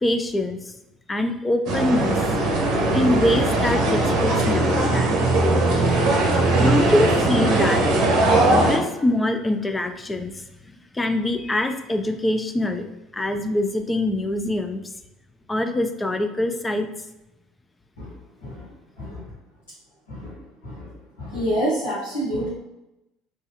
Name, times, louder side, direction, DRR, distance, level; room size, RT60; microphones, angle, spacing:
voice 1, 0.0-0.7 1.1-2.2 2.9-5.1 6.6-7.8 8.4-10.4 10.9-14.8 15.5-16.9, left 1 dB, 15° left, 7 dB, 0.3 m, -24 dB
sound 1, 1.7-8.8, right 2 dB, 60° right, 0.8 m, -20 dB
voice 2, 21.2-22.5, equal, 85° left, -10 dB, 1.3 m, -27 dB
3.0 x 2.3 x 2.9 m, 0.92 s
hypercardioid pair, 65°, 0 cm